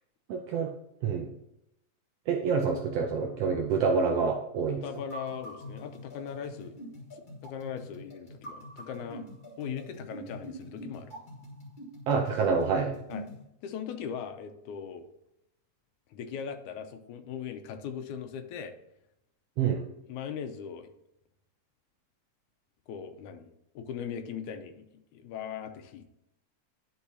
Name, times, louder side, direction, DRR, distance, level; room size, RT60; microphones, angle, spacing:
voice 1, 0.3-0.7 1.0-1.3 2.3-4.8 12.1-12.9 19.6-19.9, right 5 dB, 80° right, 3 dB, 1.4 m, -27 dB
voice 2, 4.8-6.8 7.4-9.3 9.6-11.1 13.1-13.3 13.6-15.1 16.1-18.7 20.1-20.9 22.9-23.5 23.8-24.9 25.1-26.1, left 7 dB, 85° left, 8 dB, 2.1 m, -39 dB
sound 1, 4.9-13.4, equal, 25° left, 1.3 m, -44 dB
11.0 x 4.7 x 2.8 m, 0.83 s
omnidirectional pair, 3.5 m